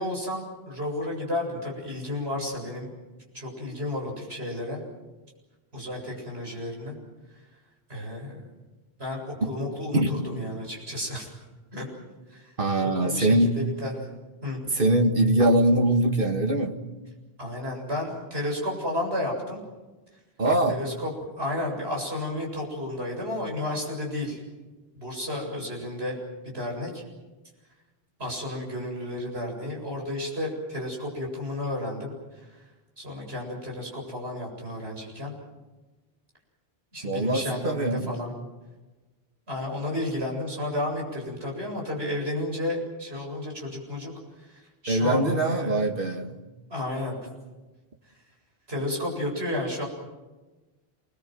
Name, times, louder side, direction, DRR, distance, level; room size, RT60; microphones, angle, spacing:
voice 1, 0.0-2.9 3.3-4.8 5.7-6.9 7.9-8.5 9.0-11.3 11.7-11.9 12.3-12.5 12.8-14.1 14.4-14.6 17.4-19.6 20.7-21.1 21.4-24.4 25.0-26.2 26.5-27.0 28.2-32.1 32.5-32.6 33.0-35.3 36.9-38.4 39.5-44.1 44.4-45.9 46.7-47.2 48.7-49.9, left 1 dB, 75° right, 0 dB, 8.0 m, -32 dB
voice 2, 12.6-13.6 14.7-16.8 20.4-20.8 37.0-38.1 44.9-46.4, right 1 dB, 55° right, 5 dB, 2.2 m, -22 dB
28.0 x 21.5 x 7.8 m, 1.2 s
omnidirectional pair, 1.1 m